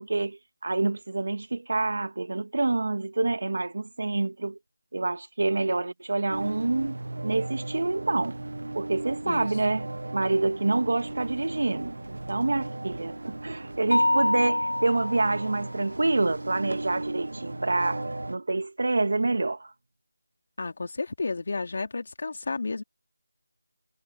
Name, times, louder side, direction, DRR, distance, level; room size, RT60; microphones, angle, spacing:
voice 1, 0.0-4.6 4.9-8.4 8.8-9.9 10.1-19.7, right 2 dB, 55° right, 2.1 m, -27 dB
sound 1, 6.3-18.4, right 2 dB, 70° right, 1.0 m, -36 dB
Mallet percussion, 13.9-15.7, left 1 dB, 70° left, 1.1 m, -26 dB
voice 2, 20.6-22.8, left 3 dB, 40° left, 3.2 m, -32 dB
figure-of-eight pair, 175°, 0 cm